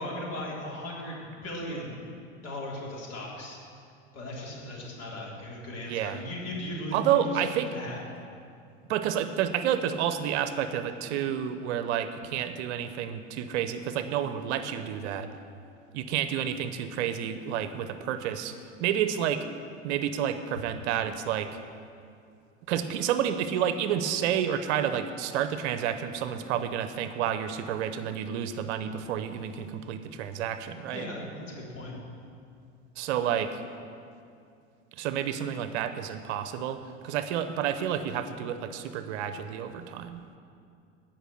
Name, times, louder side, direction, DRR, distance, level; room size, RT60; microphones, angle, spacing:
voice 1, 0.0-2.0 2.4-3.6 4.1-7.4 7.7-8.0 30.9-32.0, left 1 dB, 40° left, -3 dB, 3.7 m, -37 dB
voice 2, 5.9-6.2 6.9-7.7 8.9-15.3 15.9-18.5 18.8-19.4 19.8-21.6 22.7-31.1 33.0-33.6 34.9-40.2, right 9 dB, 60° right, 10 dB, 0.8 m, -30 dB
17.0 x 6.1 x 6.4 m, 2.4 s
hypercardioid pair, 85°, 38 cm